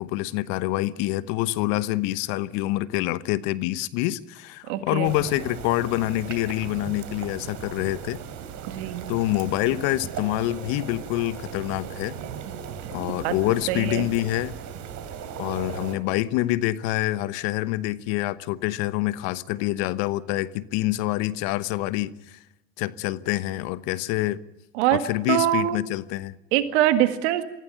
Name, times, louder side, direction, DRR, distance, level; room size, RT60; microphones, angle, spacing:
voice 1, 0.0-8.2 9.1-12.1 12.9-14.6 15.4-22.4 22.8-24.4 24.9-26.3, left 16 dB, 70° left, 1.0 m, -26 dB
voice 2, 4.7-5.1 8.7-9.0 13.2-13.3 13.7-14.1 24.7-25.8 26.5-27.4, right 13 dB, 80° right, 1.9 m, -23 dB
sound 1, 5.0-16.0, right 8 dB, 60° right, 3.2 m, -37 dB
24.0 x 16.0 x 9.1 m
hypercardioid pair, 70°, 33 cm